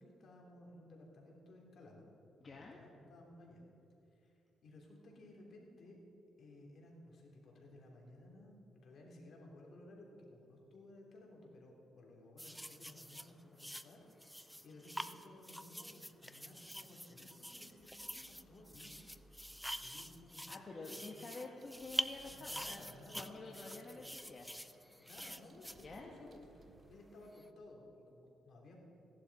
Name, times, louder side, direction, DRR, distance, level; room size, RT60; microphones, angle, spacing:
voice 1, 0.0-2.1 2.5-3.6 4.1-6.0 6.4-19.4 19.8-21.2 22.4-23.8 25.0-26.6 26.9-28.8, left 1 dB, 55° left, -1 dB, 3.1 m, -57 dB
voice 2, 2.4-2.8 20.5-22.8 23.1-24.5 25.8-26.1, left 3 dB, 35° left, -1 dB, 1.3 m, -49 dB
sound 1, 12.4-26.4 27.2-27.4, equal, ahead, 0.5 m, -46 dB
sound 2, 21.6-27.0, right 4 dB, 50° right, 0.8 m, -66 dB
16.5 x 11.5 x 4.1 m, 2.9 s
cardioid pair, 90°, 0 cm